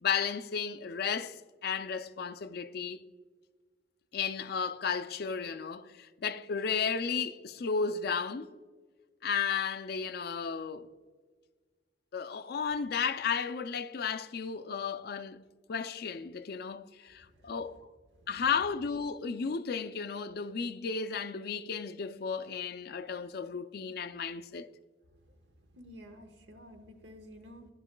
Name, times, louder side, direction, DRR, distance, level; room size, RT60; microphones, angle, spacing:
voice 1, 0.0-3.1 4.1-8.5 9.2-10.9 12.1-15.4 15.7-17.8 18.3-24.7, left 6 dB, 60° left, 0.4 m, -34 dB
voice 2, 25.7-27.7, equal, 85° right, 1.2 m, -51 dB
11.5 x 11.0 x 2.2 m
head